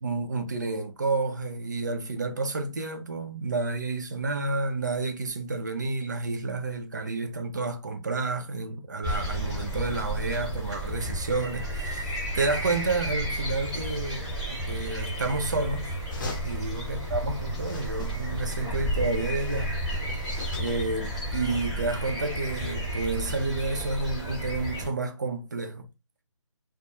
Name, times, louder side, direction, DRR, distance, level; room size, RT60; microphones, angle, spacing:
voice 1, 0.0-14.3 14.7-16.0 16.4-19.7 20.5-25.9, right 3 dB, 35° right, 0.4 m, -30 dB
sound 1, 9.0-24.9, right 1 dB, ahead, 0.9 m, -32 dB
sound 2, 16.1-16.8 17.6-18.5 18.7-20.9, left 3 dB, 35° left, 0.6 m, -43 dB
2.2 x 2.0 x 2.9 m
figure-of-eight pair, 155°, 17 cm